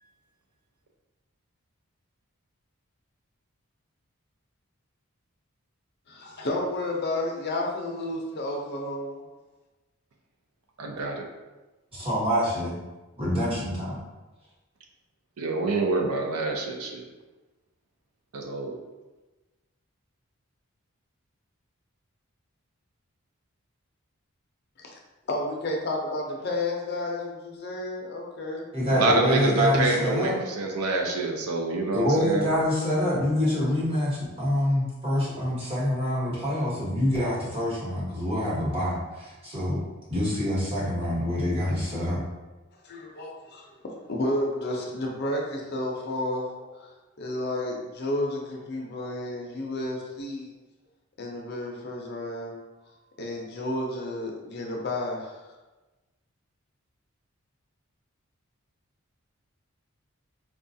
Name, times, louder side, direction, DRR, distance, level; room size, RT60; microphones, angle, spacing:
voice 1, 6.1-9.2 24.8-25.0 25.3-28.7 42.8-50.5 51.2-52.6 53.2-55.4, left 1 dB, 45° left, 0 dB, 0.5 m, -31 dB
voice 2, 10.8-11.2 15.4-17.0 18.3-18.8 28.9-32.5, right 2 dB, 85° right, 2 dB, 0.6 m, -26 dB
voice 3, 11.9-12.7 13.2-14.0 28.7-30.4 31.9-39.8 40.1-42.2, equal, 25° right, -7 dB, 1.0 m, -26 dB
4.7 x 2.3 x 2.6 m, 1.1 s
head